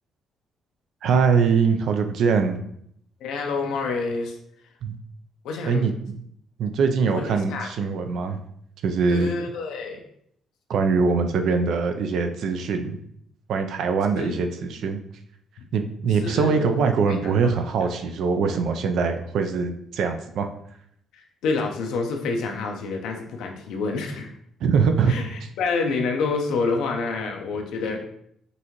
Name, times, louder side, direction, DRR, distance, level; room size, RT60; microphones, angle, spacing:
voice 1, 1.0-2.6 4.8-5.0 5.6-6.2 6.6-8.4 8.8-9.3 10.7-13.0 13.5-15.0 15.7-20.5 24.6-25.1, right 5 dB, 75° right, 6 dB, 0.5 m, -22 dB
voice 2, 3.2-4.4 5.4-5.9 7.0-7.7 9.1-10.0 14.2-14.4 16.1-16.7 17.1-17.3 21.1-24.3 25.1-28.1, left 4 dB, 85° left, 3 dB, 0.7 m, -28 dB
5.4 x 2.7 x 3.0 m, 0.70 s
cardioid pair, 90°, 0 cm